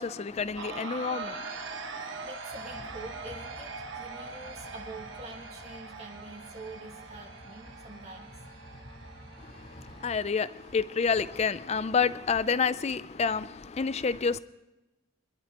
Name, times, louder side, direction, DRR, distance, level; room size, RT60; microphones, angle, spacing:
voice 1, 0.0-2.3 9.4-14.4, left 5 dB, 30° left, 0.4 m, -29 dB
sound 1, 0.6-12.5, right 4 dB, 65° right, 1.2 m, -43 dB
voice 2, 2.0-8.3, right 2 dB, 35° right, 2.1 m, -46 dB
ar condicionado fuleiro, 2.5-10.2, equal, 80° left, 3.8 m, -50 dB
24.5 x 12.0 x 2.9 m
head